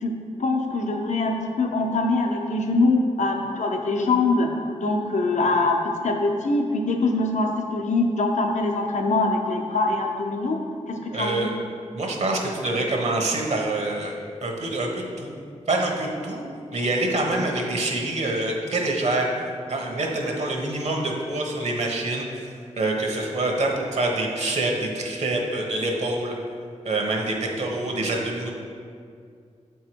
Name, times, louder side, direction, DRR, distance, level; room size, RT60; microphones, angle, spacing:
voice 1, 0.0-4.5 4.8-5.8 6.0-10.6 10.9-11.5, left 2 dB, 75° left, 2 dB, 0.8 m, -23 dB
voice 2, 11.1-11.5 11.9-14.1 14.4-15.3 15.7-16.4 16.7-19.3 19.7-22.5 22.8-26.3 26.8-28.5, right 2 dB, 65° right, 1 dB, 1.1 m, -26 dB
7.0 x 4.6 x 4.6 m, 2.3 s
wide cardioid pair, 105°, 12 cm